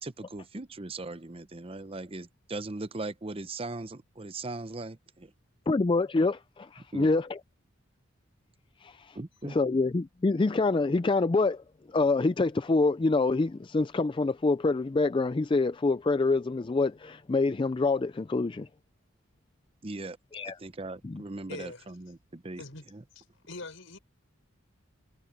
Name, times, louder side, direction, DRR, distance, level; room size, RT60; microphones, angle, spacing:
voice 1, 0.0-5.3 6.9-7.2 9.1-9.6 19.8-20.2 20.4-22.6 22.9-23.0, right 2 dB, 30° right, 0.7 m, -39 dB
voice 2, 5.7-7.4 8.8-9.1 9.5-11.6 11.9-18.7 20.3-20.5 21.0-21.2, left 3 dB, 25° left, 0.3 m, -26 dB
voice 3, 21.5-21.9 22.6-22.8 23.1-24.0, left 3 dB, 70° left, 5.4 m, -43 dB
head